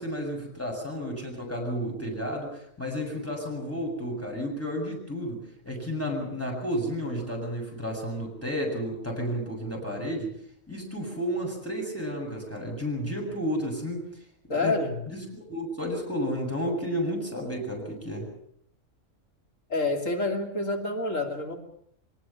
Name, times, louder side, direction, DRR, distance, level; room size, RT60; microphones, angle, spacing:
voice 1, 0.0-10.3 10.7-14.1 14.5-14.7 15.1-18.3, equal, 10° left, 0 dB, 7.4 m, -32 dB
voice 2, 14.5-15.0 19.7-21.6, left 2 dB, 80° left, 2 dB, 3.3 m, -28 dB
23.5 x 20.0 x 7.2 m, 0.70 s
omnidirectional pair, 1.3 m